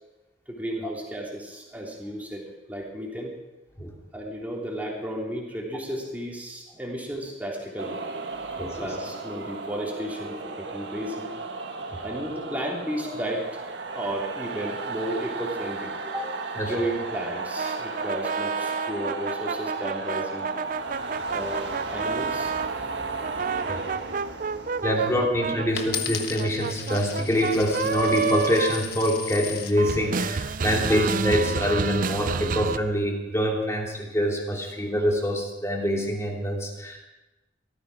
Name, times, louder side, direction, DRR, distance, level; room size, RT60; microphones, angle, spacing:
voice 1, 0.5-3.3 4.1-8.0 8.3-11.3 12.0-13.6 13.9-20.5 21.3-22.5 30.9-31.0, right 1 dB, 10° right, -3 dB, 3.5 m, -33 dB
sound 1, 7.8-26.3, right 3 dB, 75° right, 1.6 m, -35 dB
sound 2, 17.6-22.7 23.2-29.5 29.8-32.8, right 5 dB, 50° right, 0.5 m, -30 dB
voice 2, 24.8-37.0, equal, 15° left, -1 dB, 2.9 m, -25 dB
Coin (dropping), 25.8-29.8 30.5-30.9, left 8 dB, 55° left, 1.5 m, -36 dB
18.0 x 14.0 x 5.0 m, 1.0 s
head